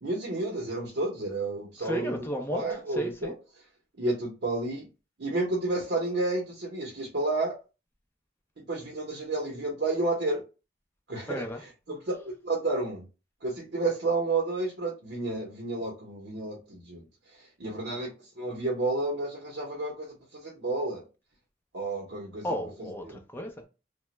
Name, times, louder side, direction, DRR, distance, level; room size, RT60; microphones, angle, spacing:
voice 1, 0.0-2.2 2.5-3.3 4.0-4.8 5.2-7.5 8.6-10.4 11.1-13.0 13.4-17.0 17.3-21.0 21.7-22.4 23.0-23.2, right 2 dB, 70° right, 0.8 m, -31 dB
voice 2, 1.8-2.6 2.9-3.3 11.3-11.6 22.4-23.7, equal, 10° left, 0.5 m, -34 dB
2.9 x 2.2 x 3.1 m
head